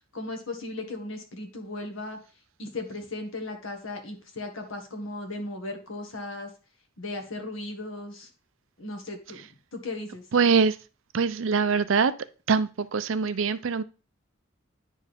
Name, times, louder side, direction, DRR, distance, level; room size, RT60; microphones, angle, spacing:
voice 1, 0.1-2.2 2.6-6.5 7.0-8.3 8.8-10.2, left 2 dB, 70° left, 1.6 m, -36 dB
voice 2, 10.3-10.8 11.1-12.1 12.5-13.8, right 5 dB, 65° right, 0.5 m, -23 dB
9.9 x 4.5 x 3.5 m
head